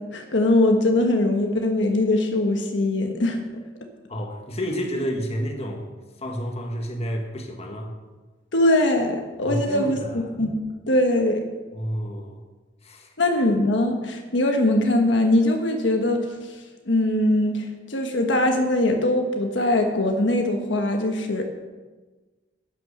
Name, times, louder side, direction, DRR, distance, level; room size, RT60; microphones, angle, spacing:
voice 1, 0.0-3.4 8.5-10.6 10.9-11.4 13.2-16.6 16.9-21.4, left 1 dB, 70° left, 3 dB, 1.3 m, -21 dB
voice 2, 4.1-5.9 6.2-7.9 9.5-10.2 11.7-12.4 12.8-13.1, equal, 35° left, 2 dB, 1.8 m, -30 dB
11.0 x 9.4 x 6.7 m, 1.3 s
head